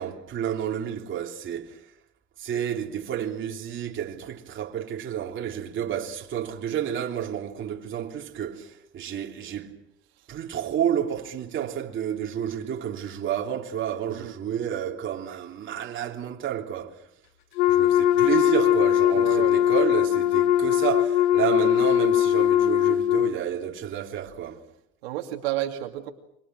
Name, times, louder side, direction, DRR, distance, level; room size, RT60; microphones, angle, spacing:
voice 1, 0.0-1.8 2.4-9.8 10.3-17.0 17.7-24.6, right 9 dB, 40° right, 3.4 m, -30 dB
Wind instrument woodwind instrument, 17.6-23.3, left 11 dB, 90° left, 1.3 m, -20 dB
voice 2, 19.1-19.5 25.0-26.1, right 14 dB, 85° right, 2.6 m, -31 dB
27.5 x 25.0 x 6.3 m
supercardioid pair, 105°, 30 cm